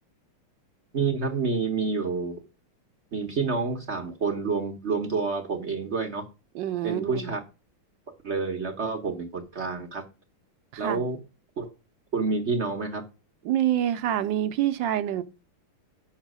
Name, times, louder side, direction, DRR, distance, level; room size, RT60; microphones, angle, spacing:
voice 1, 0.9-2.4 3.1-6.2 6.8-7.4 8.2-10.0 10.8-11.2 11.6-11.7 12.1-13.0, right 4 dB, 50° right, 0.8 m, -28 dB
voice 2, 6.5-7.3 10.7-11.0 13.4-15.2, right 11 dB, 70° right, 1.2 m, -26 dB
7.3 x 5.7 x 6.0 m
omnidirectional pair, 2.4 m